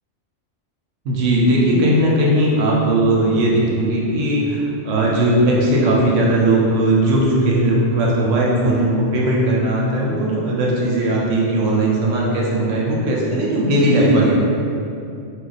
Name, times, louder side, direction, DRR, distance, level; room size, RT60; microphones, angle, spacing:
voice 1, 1.0-14.3, right 1 dB, 90° right, -3 dB, 1.0 m, -18 dB
2.4 x 2.2 x 3.9 m, 2.6 s
omnidirectional pair, 1.3 m